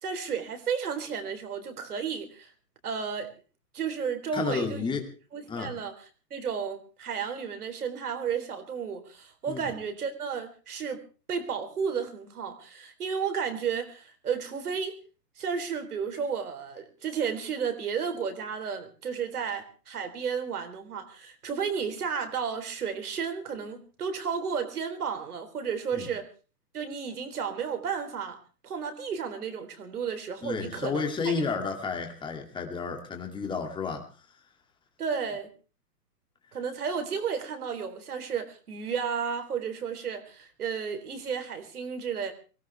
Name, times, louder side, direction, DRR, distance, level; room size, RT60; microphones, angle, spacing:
voice 1, 0.0-2.5 2.8-3.3 3.7-4.9 5.3-11.0 11.3-15.0 15.4-26.3 26.7-28.4 28.6-31.5 35.0-35.5 36.5-42.3, right 6 dB, 65° right, 7 dB, 3.9 m, -33 dB
voice 2, 4.3-5.1 5.5-5.7 9.5-9.6 25.9-26.1 30.4-34.1, left 5 dB, 10° left, 3 dB, 2.4 m, -31 dB
23.5 x 17.5 x 3.4 m, 0.35 s
figure-of-eight pair, 125°, 48 cm